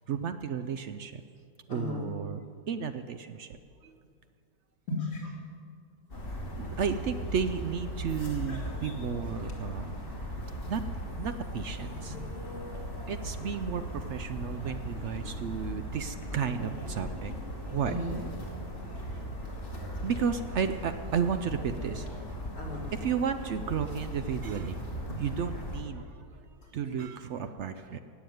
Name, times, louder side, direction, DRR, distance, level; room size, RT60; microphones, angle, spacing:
voice 1, 0.1-1.2 1.7-2.4 2.7-3.5 3.8-3.9 6.6-9.9 10.7-10.8 11.2-12.1 13.1-17.3 17.7-17.9 20.0-22.1 22.9-24.8 25.2-26.2 26.7-28.0, right 7 dB, 70° right, 9 dB, 0.7 m, -33 dB
voice 2, 1.7-2.1 4.9-5.4 11.9-12.5 12.9-13.1 15.2-15.6 16.3-16.6 17.8-18.2 22.5-22.9, left 1 dB, 50° left, -1 dB, 3.4 m, -37 dB
sound 1, 6.1-25.8, equal, 35° left, 2.4 m, -38 dB
17.0 x 7.1 x 9.2 m, 2.3 s
omnidirectional pair, 1.8 m